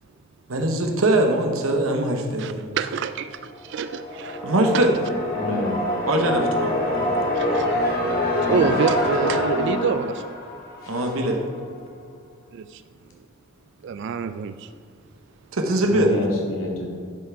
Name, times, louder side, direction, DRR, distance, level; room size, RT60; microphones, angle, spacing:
voice 1, 0.5-2.8 4.4-4.9 6.1-7.3 10.9-11.4 15.5-16.1, right 1 dB, 80° right, 3 dB, 1.0 m, -22 dB
voice 2, 2.4-4.4 4.7-4.9 7.4-7.7 8.4-10.2 12.5-12.8 13.8-14.7, right 6 dB, 55° right, 11 dB, 0.3 m, -27 dB
sound 1, 3.6-11.4, left 1 dB, 45° left, 2.4 m, -25 dB
voice 3, 5.3-5.8 8.4-8.7 10.8-11.1 15.9-16.9, left 2 dB, 80° left, -2 dB, 2.4 m, -28 dB
10.5 x 5.9 x 4.5 m, 2.1 s
head